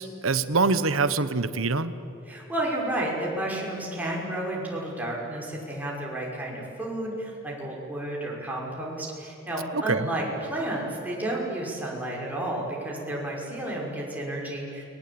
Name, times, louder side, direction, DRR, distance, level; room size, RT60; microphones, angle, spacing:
voice 1, 0.0-1.9 9.7-10.1, right 4 dB, 80° right, 13 dB, 1.1 m, -25 dB
voice 2, 2.3-14.8, right 1 dB, 10° right, -3 dB, 6.0 m, -31 dB
29.5 x 21.5 x 8.8 m, 3.0 s
head